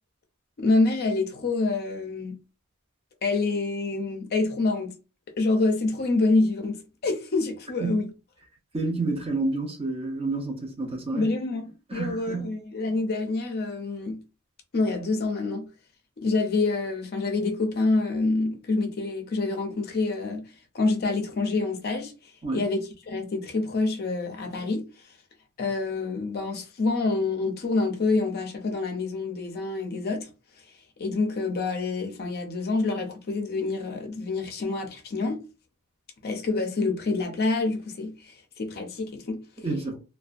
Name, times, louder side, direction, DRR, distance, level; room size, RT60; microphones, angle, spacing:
voice 1, 0.6-2.4 3.2-4.9 5.4-8.1 11.1-14.2 14.7-15.7 16.2-20.5 20.7-22.1 22.5-24.9 25.6-30.3 31.0-35.4 36.2-39.4, left 3 dB, 45° left, 0.5 m, -27 dB
voice 2, 8.7-11.3 11.9-12.6 22.4-22.6 39.6-40.0, right 3 dB, 25° right, 0.6 m, -29 dB
2.5 x 2.2 x 2.4 m
head